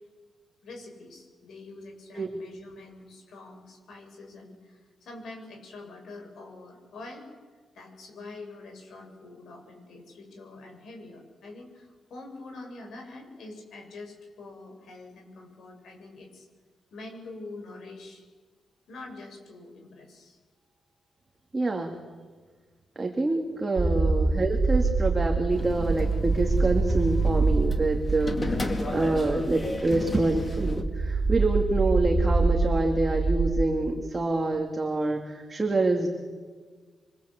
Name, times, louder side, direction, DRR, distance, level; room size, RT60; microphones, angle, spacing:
voice 1, 0.6-7.3 7.7-16.5 16.9-18.2 18.9-20.4 23.9-24.1, left 2 dB, 65° left, 3 dB, 7.2 m, -45 dB
voice 2, 21.5-22.0 23.0-28.6 28.9-36.1, right 2 dB, 20° right, 2 dB, 2.4 m, -26 dB
sound 1, 23.8-33.6, right 3 dB, 35° right, 2.2 m, -26 dB
sound 2, 25.5-30.8, left 2 dB, 20° left, 2.2 m, -33 dB
27.5 x 24.5 x 8.4 m, 1.5 s
wide cardioid pair, 165°, 0 cm